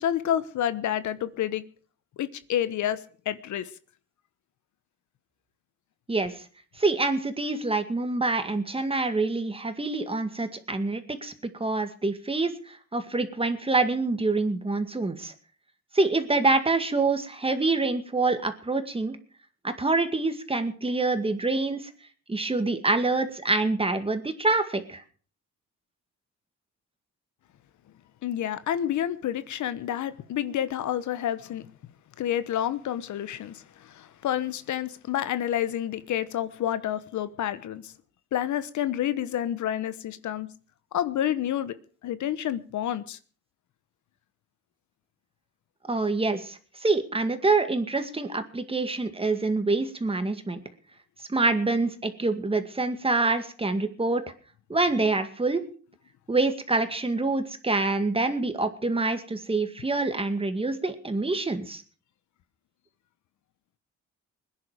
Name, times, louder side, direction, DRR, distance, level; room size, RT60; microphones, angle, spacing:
voice 1, 0.0-1.6 2.2-3.0 3.2-3.7 28.2-31.7 32.2-37.9 38.3-40.5 40.9-41.7 42.0-43.2, left 11 dB, 70° left, 1.1 m, -29 dB
voice 2, 6.8-15.3 15.9-19.2 19.6-21.9 22.3-25.0 45.9-50.6 51.3-54.2 54.7-55.6 56.3-61.8, right 3 dB, 20° right, 2.1 m, -26 dB
20.5 x 10.5 x 5.1 m
cardioid pair, 90°, 30 cm